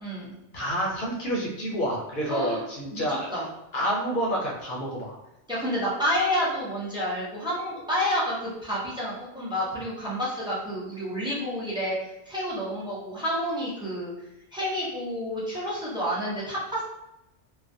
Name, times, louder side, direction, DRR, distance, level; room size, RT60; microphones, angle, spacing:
voice 1, 0.0-0.4 2.3-2.6 2.9-3.0 3.3-3.4 5.5-14.1 14.5-16.8, equal, 5° right, -7 dB, 0.5 m, -29 dB
voice 2, 0.5-3.3 3.7-5.2, equal, 60° left, -2 dB, 0.6 m, -28 dB
2.3 x 2.1 x 2.6 m, 0.89 s
omnidirectional pair, 1.2 m